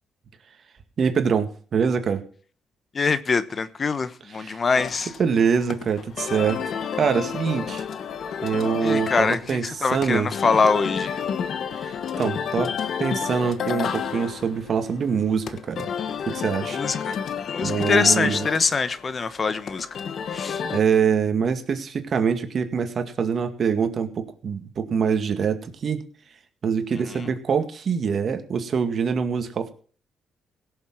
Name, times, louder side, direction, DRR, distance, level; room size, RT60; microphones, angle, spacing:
voice 1, 1.0-2.2 4.4-4.6 5.2-6.6 7.0-7.8 8.4-10.3 11.7-12.7 13.0-15.9 16.3-16.8 17.6-18.5 20.6-26.0 26.6-29.7, right 6 dB, 50° right, 2.0 m, -24 dB
voice 2, 2.9-5.1 8.8-11.2 16.7-17.2 17.5-19.9 20.3-20.6, left 4 dB, 40° left, 1.0 m, -23 dB
sound 1, 4.7-20.8, left 7 dB, 60° left, 1.3 m, -31 dB
17.0 x 7.2 x 6.0 m
cardioid pair, 90°, 0 cm